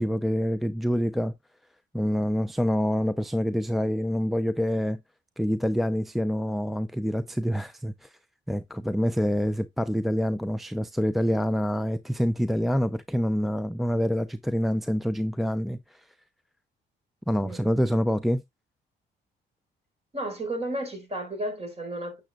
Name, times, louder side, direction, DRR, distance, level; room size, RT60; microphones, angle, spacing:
voice 1, 0.0-1.3 1.9-5.0 5.4-8.1 8.5-16.0 17.3-18.4, equal, ahead, 0.4 m, -26 dB
voice 2, 20.1-22.2, right 1 dB, 30° right, 4.2 m, -33 dB
10.0 x 6.7 x 2.4 m
cardioid pair, 90°, 20 cm